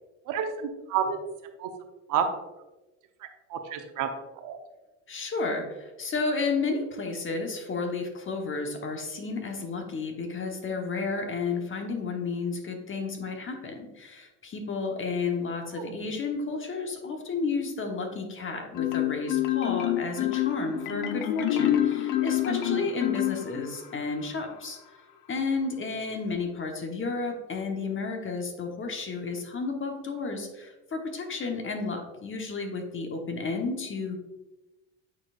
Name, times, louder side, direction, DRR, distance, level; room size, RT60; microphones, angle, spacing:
voice 1, 0.3-1.2 1.6-1.7 2.1-2.3 3.5-4.1 4.4-4.6 15.7-16.1 22.5-22.9, right 8 dB, 60° right, 5 dB, 1.0 m, -30 dB
voice 2, 5.1-24.8 25.3-34.2, left 4 dB, 35° left, 4 dB, 1.2 m, -32 dB
Marimba xylophone, 18.8-23.9, left 13 dB, 65° left, 0.7 m, -27 dB
8.5 x 4.5 x 2.5 m, 1.1 s
supercardioid pair, 80°, 36 cm